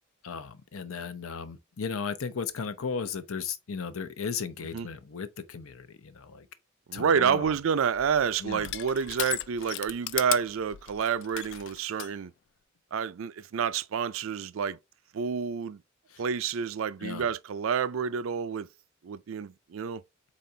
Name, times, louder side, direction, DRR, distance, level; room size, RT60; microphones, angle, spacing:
voice 1, 0.2-6.5 6.9-7.5 8.4-8.7 16.1-16.2 17.0-17.3, left 5 dB, 85° left, 0.7 m, -36 dB
voice 2, 6.9-12.3 12.9-14.8 15.1-15.8 16.2-18.7 19.0-20.0, right 7 dB, 70° right, 0.4 m, -29 dB
Crushing, 7.3-12.1, left 14 dB, 60° left, 0.3 m, -37 dB
4.2 x 3.8 x 3.3 m
head